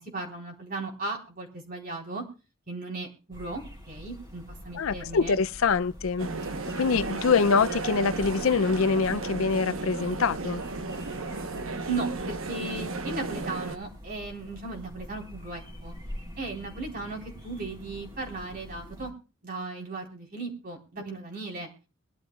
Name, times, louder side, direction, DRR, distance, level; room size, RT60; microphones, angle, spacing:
voice 1, 0.0-2.2 2.7-5.4 11.9-15.9 16.4-19.1 19.4-21.7, right 3 dB, 45° right, 4.1 m, -36 dB
sound 1, 3.3-19.1, equal, 20° right, 3.7 m, -45 dB
voice 2, 4.7-6.3 6.8-10.6, left 5 dB, 75° left, 0.5 m, -24 dB
sound 2, 6.2-13.8, right 3 dB, 75° right, 1.0 m, -34 dB
22.5 x 12.0 x 2.4 m
head